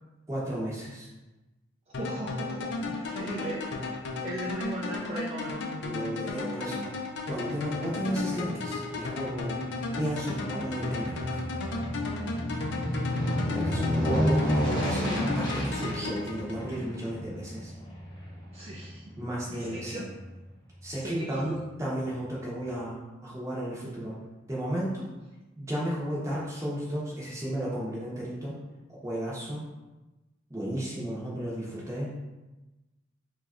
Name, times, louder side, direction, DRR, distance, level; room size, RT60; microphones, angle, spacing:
voice 1, 0.3-1.1 5.8-7.0 7.3-9.6 10.0-11.4 13.5-17.7 19.2-20.0 20.8-24.2 24.5-25.1 25.5-28.6 29.0-29.6 30.5-32.2, right 1 dB, 15° right, -6 dB, 0.8 m, -33 dB
sound 1, 1.9-17.0, left 3 dB, 60° left, 0.4 m, -35 dB
voice 2, 2.0-3.7 4.2-5.6 18.5-19.0 19.5-20.0 21.0-21.6, right 1 dB, 30° right, -5 dB, 0.4 m, -37 dB
Aircraft, 7.3-19.8 20.2-20.3, equal, 25° left, 0.6 m, -32 dB
3.0 x 2.3 x 3.6 m, 1.1 s
head